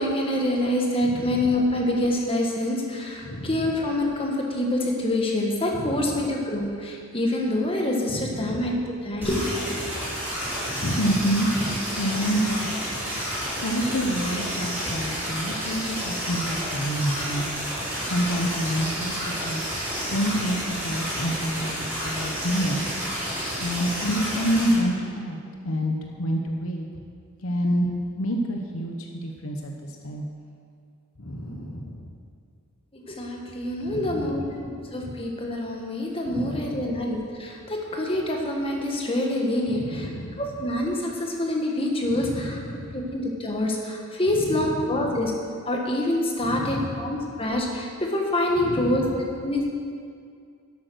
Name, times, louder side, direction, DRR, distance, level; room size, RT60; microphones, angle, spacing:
voice 1, 0.0-8.7 9.0-9.8 33.0-34.6 34.9-40.1 40.4-42.6 42.9-45.3 45.7-49.0 49.4-49.7, left 1 dB, 25° left, 0 dB, 1.5 m, -26 dB
voice 2, 1.0-1.5 3.2-3.8 5.7-6.2 8.1-8.7 10.8-12.7 13.1-19.8 20.1-25.4 25.6-26.9 27.4-30.2 31.2-32.1 33.9-34.8 35.0-35.2 36.3-37.0 39.7-40.6 42.0-43.0 44.3-45.3 46.4-47.2 48.6-49.5, equal, 75° left, 1 dB, 1.0 m, -29 dB
sound 1, 9.2-24.7, equal, 10° right, 3.6 m, -30 dB
11.5 x 8.5 x 6.4 m, 2.3 s
head